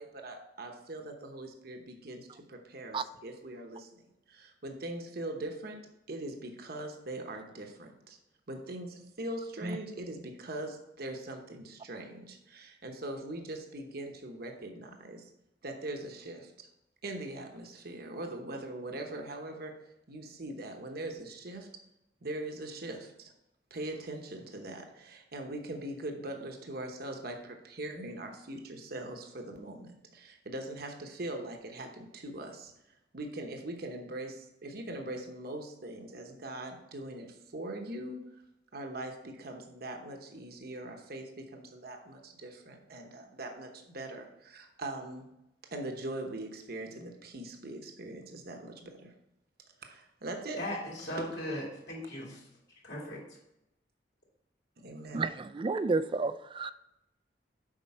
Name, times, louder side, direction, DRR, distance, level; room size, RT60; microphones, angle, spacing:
voice 1, 0.0-5.8 6.1-8.2 8.5-15.3 15.6-16.7 17.0-21.7 22.2-23.3 23.7-32.7 33.1-38.4 38.7-45.2 45.7-49.1 49.8-50.6 51.0-51.3 54.8-55.3, right 1 dB, 60° right, 3 dB, 1.0 m, -41 dB
voice 2, 50.5-52.4 52.8-53.2, left 1 dB, 65° left, -3 dB, 2.9 m, -38 dB
voice 3, 55.1-56.7, right 3 dB, 30° right, 14 dB, 0.3 m, -31 dB
7.5 x 5.3 x 4.3 m, 0.88 s
head